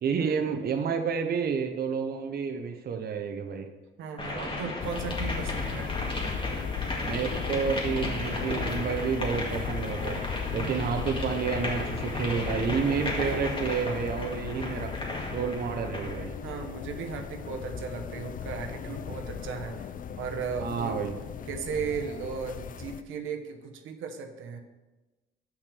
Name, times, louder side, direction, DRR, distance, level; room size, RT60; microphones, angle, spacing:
voice 1, 0.0-3.7 7.0-10.2 10.5-14.9 15.3-16.3 20.6-21.1, right 6 dB, 50° right, 4 dB, 0.8 m, -30 dB
voice 2, 4.0-5.9 10.6-10.9 14.5-14.9 16.4-19.8 20.2-21.0 21.5-24.6, right 6 dB, 80° right, 4 dB, 1.0 m, -36 dB
sound 1, 4.2-16.2, left 2 dB, 25° left, 2.0 m, -35 dB
sound 2, 4.8-23.0, left 7 dB, 45° left, 0.5 m, -36 dB
6.4 x 5.9 x 6.8 m, 1.1 s
cardioid pair, 90°, 20 cm